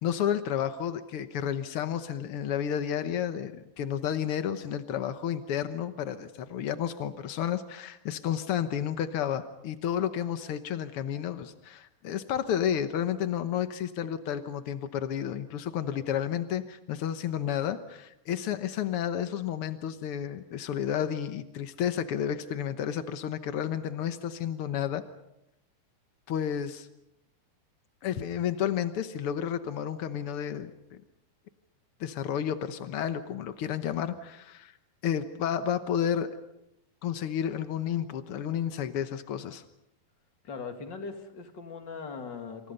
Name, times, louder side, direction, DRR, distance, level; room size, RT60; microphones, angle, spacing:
voice 1, 0.0-25.0 26.3-26.9 28.0-30.7 32.0-34.7 35.0-36.4 37.0-39.6, left 9 dB, 85° left, 10 dB, 1.2 m, -31 dB
voice 2, 40.4-42.7, left 5 dB, 35° left, 5 dB, 2.4 m, -40 dB
28.0 x 27.5 x 5.5 m, 0.84 s
omnidirectional pair, 4.1 m